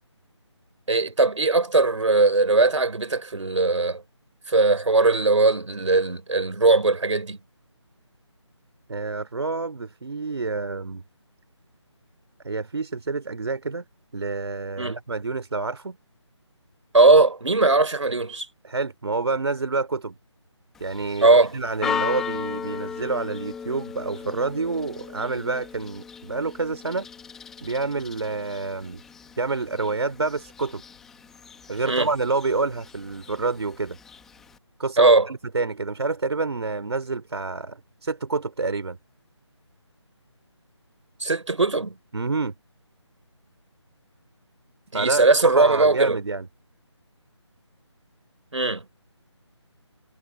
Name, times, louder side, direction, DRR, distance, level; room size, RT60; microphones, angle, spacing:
voice 1, 0.9-4.0 4.5-7.4 14.8-15.0 16.9-18.5 21.2-21.5 31.8-32.1 35.0-35.3 41.2-41.9 44.9-46.2 48.5-48.8, right 3 dB, 80° right, 3.4 m, -19 dB
voice 2, 8.9-11.0 12.4-13.8 14.1-16.0 18.6-20.1 20.8-27.1 27.6-29.0 29.4-30.8 31.7-34.0 34.8-39.0 42.1-42.5 44.9-46.5, right 3 dB, 60° right, 3.7 m, -28 dB
Church bell, 20.7-34.6, left 7 dB, ahead, 0.8 m, -37 dB
figure-of-eight pair, 165°, 16 cm